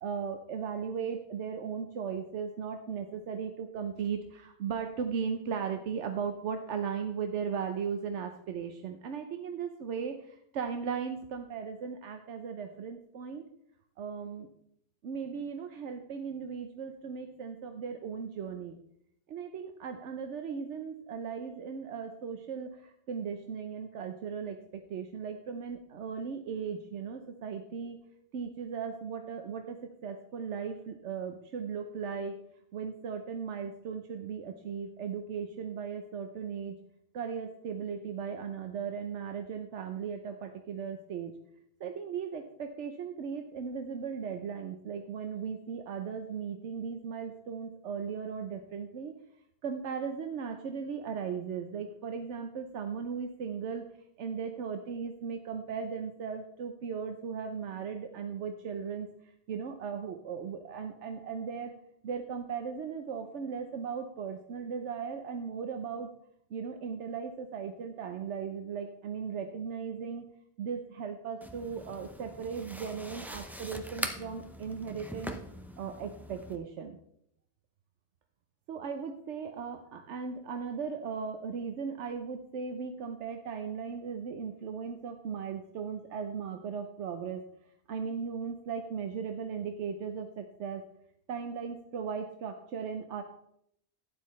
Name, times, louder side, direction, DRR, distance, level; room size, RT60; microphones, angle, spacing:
voice 1, 0.0-13.4 14.0-14.5 15.0-18.8 19.3-28.0 28.3-29.8 30.0-32.3 32.7-36.7 37.1-41.3 41.8-49.1 49.6-53.8 54.2-61.7 62.0-66.1 66.5-70.3 70.6-75.3 75.8-77.0 78.7-87.4 87.9-90.8 91.3-93.2, right 6 dB, 85° right, 5 dB, 1.1 m, -37 dB
sound 1, 71.4-76.6, equal, ahead, 0.5 m, -42 dB
12.0 x 9.6 x 3.1 m, 0.73 s
omnidirectional pair, 1.2 m